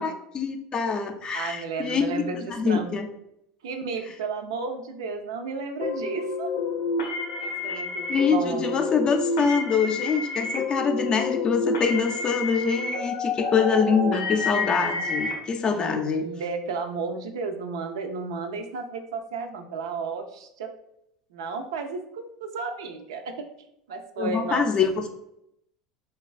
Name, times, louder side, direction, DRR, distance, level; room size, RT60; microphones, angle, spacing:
voice 1, 0.0-3.1 7.7-7.8 8.1-16.2 24.2-25.1, left 5 dB, 35° left, 5 dB, 0.4 m, -25 dB
voice 2, 1.3-2.9 3.6-6.5 7.4-8.9 15.7-20.7 21.3-23.5 23.9-24.6, right 4 dB, 85° right, 6 dB, 0.3 m, -33 dB
sound 1, 5.8-15.3, left 3 dB, 90° left, 0.6 m, -29 dB
3.2 x 2.2 x 2.4 m, 0.80 s
hypercardioid pair, 90°, 3 cm